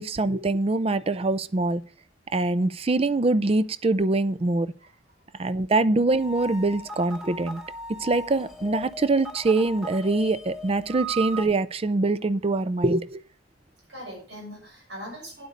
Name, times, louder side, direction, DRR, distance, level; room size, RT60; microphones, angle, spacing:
voice 1, 0.0-1.8 2.3-4.7 5.4-7.6 8.0-13.2, right 2 dB, 30° right, 16 dB, 0.4 m, -24 dB
voice 2, 4.8-5.3 7.9-8.0 12.5-12.6 13.9-15.5, equal, 65° right, -2 dB, 6.5 m, -42 dB
sound 1, 6.1-11.4, right 2 dB, 5° right, 1.5 m, -37 dB
9.3 x 8.1 x 5.1 m, 0.42 s
head